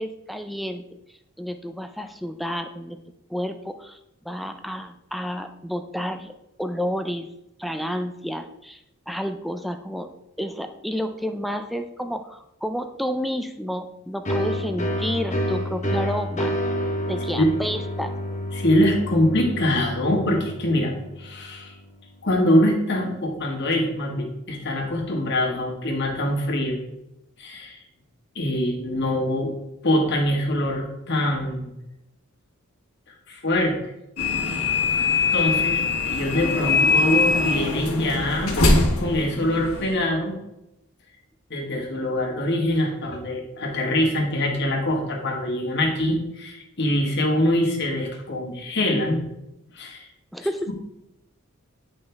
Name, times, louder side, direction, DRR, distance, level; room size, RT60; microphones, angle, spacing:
voice 1, 0.0-3.0 3.3-4.0 4.2-6.3 6.6-7.3 7.6-10.1 10.4-16.5 17.1-18.1 50.3-50.7, equal, ahead, 7 dB, 0.3 m, -30 dB
sound 1, 14.2-21.7, equal, 30° left, 1.0 m, -29 dB
voice 2, 18.5-20.9 21.2-21.7 22.2-26.8 27.4-27.8 28.3-29.5 29.8-31.7 33.3-33.8 34.4-34.7 35.3-38.6 39.0-40.4 41.5-49.2 49.7-50.1, left 1 dB, 50° left, 0 dB, 1.6 m, -24 dB
sound 2, 34.2-40.0, left 3 dB, 80° left, 1.7 m, -22 dB
8.7 x 5.4 x 3.4 m, 0.87 s
head